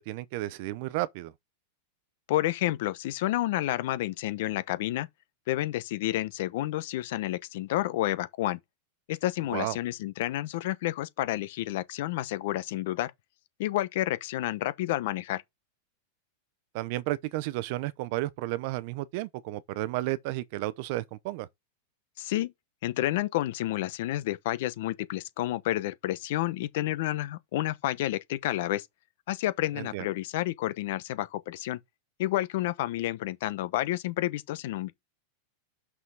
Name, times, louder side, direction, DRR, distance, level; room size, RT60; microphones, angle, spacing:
voice 1, 0.0-1.3 9.5-9.8 16.7-21.5 29.8-30.1, right 17 dB, 50° right, 0.6 m, -32 dB
voice 2, 2.3-5.1 5.5-8.6 9.1-13.1 13.6-15.4 22.2-22.5 22.8-28.9 29.3-31.8 32.2-34.9, left 15 dB, 60° left, 0.9 m, -30 dB
6.2 x 5.8 x 4.7 m
supercardioid pair, 160°, 0 cm